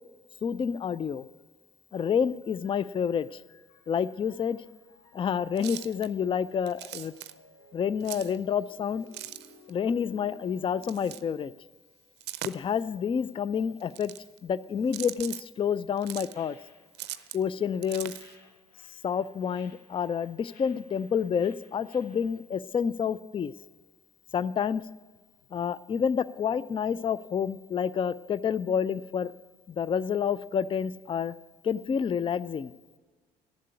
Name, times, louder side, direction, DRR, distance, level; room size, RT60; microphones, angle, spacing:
voice 1, 0.4-1.3 1.9-3.4 3.9-4.6 5.1-7.1 7.7-9.1 9.7-11.5 12.4-14.1 14.4-16.6 17.3-18.1 19.0-23.5 24.3-24.8 25.5-29.3 29.7-31.3 31.6-32.7, left 7 dB, 25° left, 18 dB, 0.4 m, -29 dB
sound 1, 2.4-11.3, left 3 dB, 55° left, 1.8 m, -58 dB
sound 2, 5.6-6.1 6.7-7.3 8.0-8.4 9.1-9.7 10.8-11.2 12.2-12.8 13.8-14.4 14.9-15.4 16.0-16.3 17.0-17.4 17.8-18.4, right 14 dB, 55° right, 0.5 m, -40 dB
sound 3, 16.3-22.4, left 3 dB, 75° left, 1.7 m, -60 dB
12.0 x 7.4 x 8.2 m, 1.4 s
hypercardioid pair, 50°, 20 cm